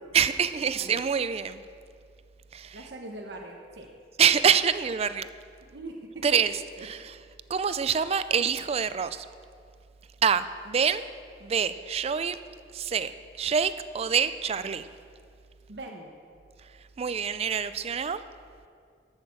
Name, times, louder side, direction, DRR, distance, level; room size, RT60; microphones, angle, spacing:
voice 1, 0.1-1.6 2.5-2.8 4.2-5.3 6.2-6.6 6.8-7.1 7.5-9.3 10.2-11.0 11.4-12.4 12.7-13.1 13.4-14.9 17.0-18.2, right 7 dB, 35° right, 13 dB, 0.4 m, -26 dB
voice 2, 2.7-3.9 5.6-6.4 6.8-6.9 15.7-16.1, right 2 dB, 75° right, 1 dB, 1.0 m, -41 dB
12.0 x 6.5 x 7.0 m, 2.2 s
head